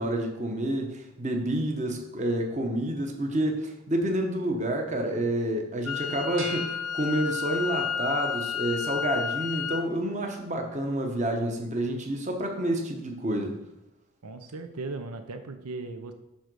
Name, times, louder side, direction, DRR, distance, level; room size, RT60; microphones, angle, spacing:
voice 1, 0.0-13.6, right 1 dB, 30° right, 3 dB, 1.1 m, -29 dB
Wind instrument woodwind instrument, 5.9-9.9, left 7 dB, 80° left, 0.5 m, -31 dB
sound 1, 6.4-7.9, right 4 dB, 60° right, 1.2 m, -43 dB
voice 2, 14.2-16.1, right 3 dB, 90° right, 8 dB, 0.7 m, -37 dB
10.0 x 3.9 x 6.2 m, 0.93 s
head